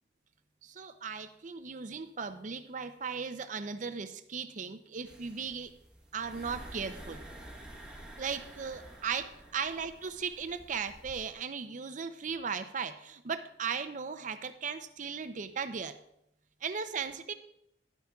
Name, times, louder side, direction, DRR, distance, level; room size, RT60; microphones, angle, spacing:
voice 1, 0.6-5.8 6.1-7.2 8.2-15.9 16.6-17.3, right 6 dB, 45° right, 11 dB, 0.5 m, -37 dB
sound 1, 5.0-11.3, right 1 dB, 5° right, 1.3 m, -50 dB
12.0 x 9.3 x 2.3 m, 0.80 s
head